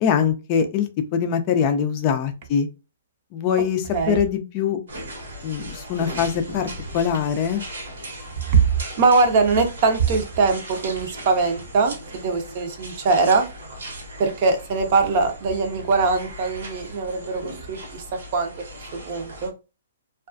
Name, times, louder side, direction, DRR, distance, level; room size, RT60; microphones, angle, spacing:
voice 1, 0.0-2.7 3.3-4.8 5.4-7.6, left 7 dB, 35° left, 8 dB, 0.4 m, -23 dB
voice 2, 3.9-4.2 9.0-13.4 14.2-18.0 18.3-18.5 18.9-19.5, right 4 dB, 45° right, 5 dB, 0.6 m, -22 dB
sound 1, 4.9-19.5, right 1 dB, 80° right, 1.1 m, -38 dB
2.4 x 2.2 x 2.5 m, 0.29 s
hypercardioid pair, 150°, 0 cm